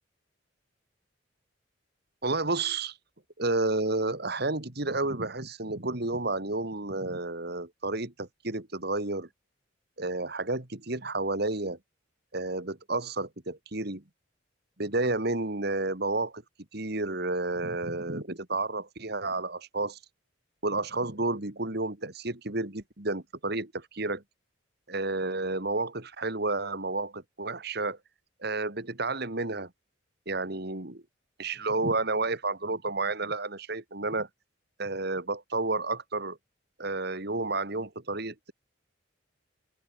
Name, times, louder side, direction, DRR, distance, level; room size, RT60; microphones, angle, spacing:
voice 1, 2.2-3.0 3.4-9.3 10.0-11.8 12.3-14.0 14.8-16.4 16.7-20.0 20.6-24.2 24.9-28.0 28.4-29.7 30.3-31.0 31.4-34.3 34.8-36.4 36.8-38.5, right 2 dB, 55° right, 2.5 m, -31 dB
open air
head